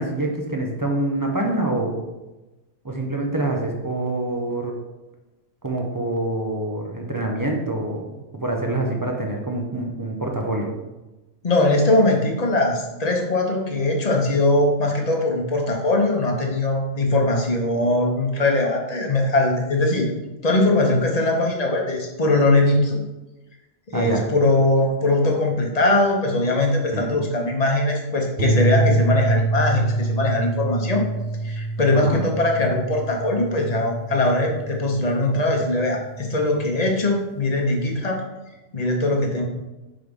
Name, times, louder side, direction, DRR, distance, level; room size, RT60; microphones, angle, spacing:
voice 1, 0.0-2.0 2.8-4.7 5.6-10.7 23.9-24.3 26.9-27.2 31.9-32.2, right 1 dB, 25° right, 0 dB, 0.4 m, -26 dB
voice 2, 11.4-20.1 20.4-23.0 23.9-31.0 31.4-38.2 38.7-39.5, left 2 dB, 35° left, 1 dB, 0.9 m, -21 dB
sound 1, 28.4-36.8, right 2 dB, 55° right, 0.7 m, -26 dB
4.7 x 3.9 x 5.2 m, 1.1 s
omnidirectional pair, 1.3 m